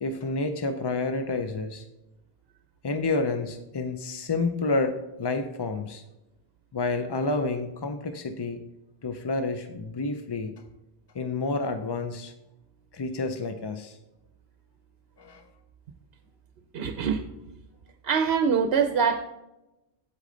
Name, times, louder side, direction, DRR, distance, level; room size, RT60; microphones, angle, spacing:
voice 1, 0.0-1.9 2.8-6.0 6.7-8.6 9.0-10.5 11.1-12.3 12.9-14.0 15.2-15.5, left 3 dB, 40° left, 7 dB, 0.3 m, -29 dB
voice 2, 16.7-17.2 18.0-19.2, right 6 dB, 65° right, 7 dB, 0.9 m, -24 dB
8.4 x 8.2 x 3.8 m, 0.97 s
omnidirectional pair, 1.1 m